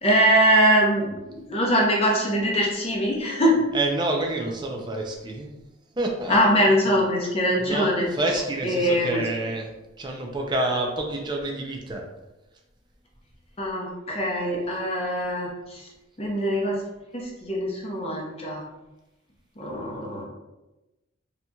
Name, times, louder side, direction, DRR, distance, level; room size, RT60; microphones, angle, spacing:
voice 1, 0.0-3.6 6.3-8.1 8.6-9.2 13.6-15.8 16.2-16.8 17.1-18.6 19.6-20.2, equal, 30° left, -2 dB, 0.7 m, -22 dB
voice 2, 3.7-5.5 6.0-6.4 7.6-9.7 10.0-12.0, right 2 dB, 20° right, 0 dB, 0.5 m, -28 dB
4.0 x 2.9 x 2.3 m, 1.0 s
head